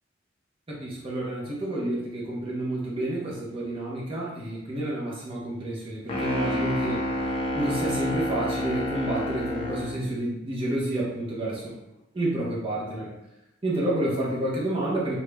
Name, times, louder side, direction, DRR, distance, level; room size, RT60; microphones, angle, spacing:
voice 1, 0.7-7.0 7.5-11.7 12.1-13.1 13.6-15.2, right 1 dB, 30° right, -5 dB, 0.7 m, -29 dB
sound 1, 6.1-10.0, left 1 dB, 30° left, 0.4 m, -29 dB
2.5 x 2.1 x 3.2 m, 0.90 s
head